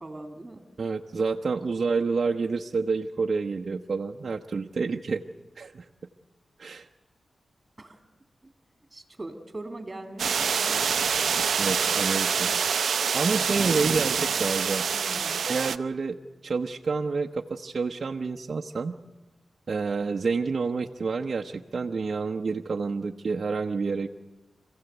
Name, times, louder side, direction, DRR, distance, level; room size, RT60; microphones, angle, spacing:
voice 1, 0.0-0.6 7.8-8.0 8.4-8.5 8.9-10.9 14.9-15.4, right 2 dB, 25° right, 7 dB, 2.7 m, -41 dB
voice 2, 0.8-5.2 5.6-5.9 6.6-6.9 11.6-12.6 13.1-14.9 15.5-16.2 16.4-19.0 19.7-24.1, right 4 dB, 60° right, 3 dB, 0.9 m, -28 dB
sound 1, 10.2-15.8, right 6 dB, 85° right, 0.7 m, -26 dB
26.5 x 16.0 x 8.0 m, 1.2 s
cardioid pair, 65°, 0 cm